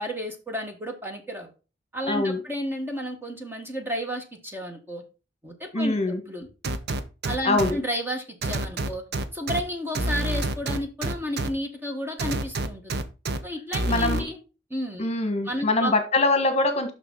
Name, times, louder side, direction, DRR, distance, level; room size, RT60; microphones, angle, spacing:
voice 1, 0.0-1.5 1.9-5.0 5.4-6.0 6.3-6.5 7.2-9.0 9.3-13.0 13.4-14.4 14.7-15.1 15.4-15.9, equal, 10° right, 1.3 m, -32 dB
voice 2, 2.1-2.4 5.7-6.2 7.4-7.8 13.9-14.3 15.0-16.9, left 2 dB, 35° left, 1.3 m, -23 dB
sound 1, 6.6-7.7 8.4-9.6 9.9-11.5 12.2-13.4 13.7-14.2, right 2 dB, 60° right, 0.8 m, -27 dB
6.6 x 6.2 x 3.7 m
head